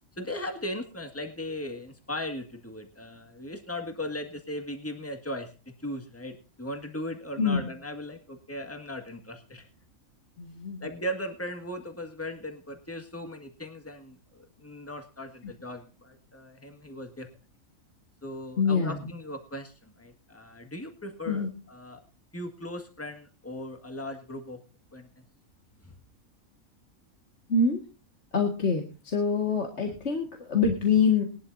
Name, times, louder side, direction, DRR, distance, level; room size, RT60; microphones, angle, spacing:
voice 1, 0.2-5.5 5.8-9.7 10.8-17.3 18.2-22.0 22.3-24.6 24.9-25.1 25.9-26.0, left 1 dB, 10° left, 5 dB, 1.9 m, -38 dB
voice 2, 10.4-10.9 18.6-19.0 21.3-21.5 27.5-27.8 28.3-31.2, left 5 dB, 50° left, 2 dB, 2.1 m, -25 dB
20.5 x 12.0 x 2.7 m, 0.34 s
omnidirectional pair, 1.5 m